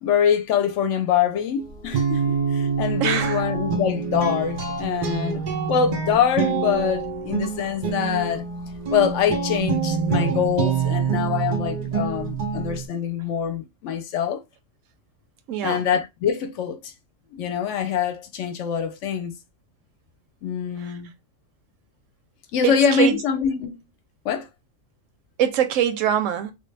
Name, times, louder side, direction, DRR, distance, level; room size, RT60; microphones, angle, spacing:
voice 1, 0.0-8.4 8.9-14.4 15.6-16.9 17.3-19.3 20.4-21.1 22.5-23.8 24.2-24.5, left 7 dB, 70° left, 0.8 m, -24 dB
Guitar, 1.6-12.9, right 5 dB, 55° right, 0.5 m, -26 dB
voice 2, 3.0-3.4 15.5-15.8 22.6-23.2 25.4-26.5, right 10 dB, 75° right, 0.9 m, -23 dB
3.1 x 2.2 x 3.2 m
omnidirectional pair, 1.4 m